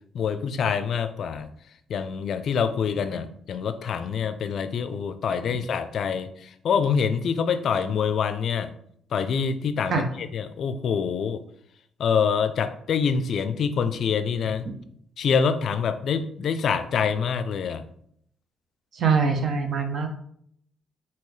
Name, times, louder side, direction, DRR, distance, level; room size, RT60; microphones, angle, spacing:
voice 1, 0.1-1.5 1.9-8.7 9.1-11.4 12.0-14.6 15.2-17.8, left 6 dB, 65° left, 11 dB, 0.4 m, -26 dB
voice 2, 18.9-20.1, right 5 dB, 60° right, 5 dB, 0.8 m, -23 dB
5.3 x 2.8 x 3.2 m, 0.67 s
cardioid pair, 90°, 0 cm